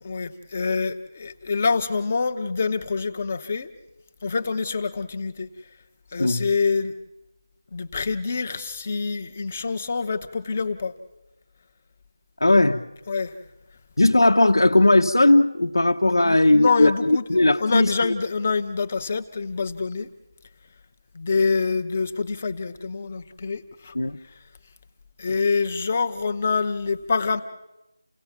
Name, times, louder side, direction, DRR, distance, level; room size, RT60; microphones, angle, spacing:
voice 1, 0.0-3.7 4.2-5.5 6.1-6.9 7.7-10.9 13.1-13.4 16.2-17.3 17.6-20.1 21.1-24.0 24.2-24.4 25.2-27.4, left 4 dB, 20° left, 7 dB, 0.9 m, -26 dB
voice 2, 12.4-12.8 14.0-17.9 23.9-24.2, left 2 dB, 75° left, 3 dB, 1.1 m, -18 dB
30.0 x 17.0 x 7.3 m, 0.95 s
figure-of-eight pair, 175°, 2 cm